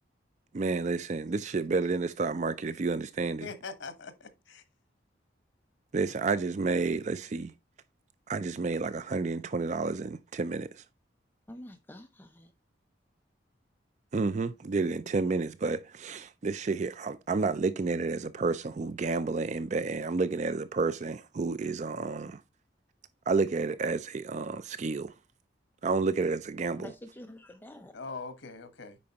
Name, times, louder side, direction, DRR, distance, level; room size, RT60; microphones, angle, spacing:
voice 1, 0.5-3.5 5.9-7.5 8.3-10.8 14.1-22.4 23.3-25.1 25.8-26.9, right 4 dB, 40° right, 0.4 m, -30 dB
voice 2, 3.4-4.6 27.9-29.0, left 4 dB, 85° left, 1.2 m, -42 dB
voice 3, 11.5-12.5 26.7-27.9, equal, 10° left, 0.6 m, -47 dB
8.5 x 5.2 x 2.9 m
head